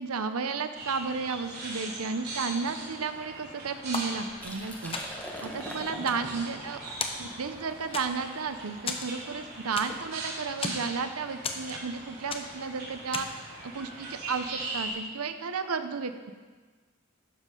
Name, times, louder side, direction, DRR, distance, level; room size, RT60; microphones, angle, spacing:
voice 1, 0.0-6.8 7.2-16.3, right 5 dB, 90° right, 9 dB, 0.8 m, -33 dB
sound 1, 0.7-14.9, right 2 dB, 45° right, 3.8 m, -41 dB
sound 2, 3.9-4.6 4.9-5.4 5.8-6.7 7.0-7.6 7.9-8.4 8.9-10.1 10.4-10.9 11.4-12.0 12.3-12.7 13.1-13.5, left 4 dB, 25° left, 0.9 m, -36 dB
Liquid, 4.3-10.0, equal, 5° left, 1.3 m, -44 dB
12.5 x 7.4 x 5.4 m, 1.4 s
head